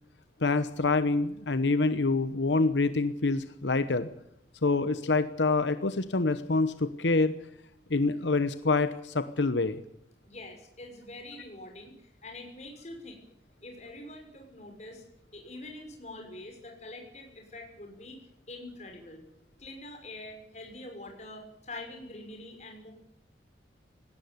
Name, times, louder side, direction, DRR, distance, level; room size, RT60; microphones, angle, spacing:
voice 1, 0.4-4.1 4.6-7.4 7.9-9.8, left 3 dB, 85° left, 12 dB, 1.0 m, -26 dB
voice 2, 10.2-13.2 13.6-15.0 15.3-18.2 18.5-19.2 19.6-22.9, left 2 dB, 40° left, 2 dB, 6.0 m, -45 dB
18.5 x 17.0 x 9.6 m, 0.77 s
head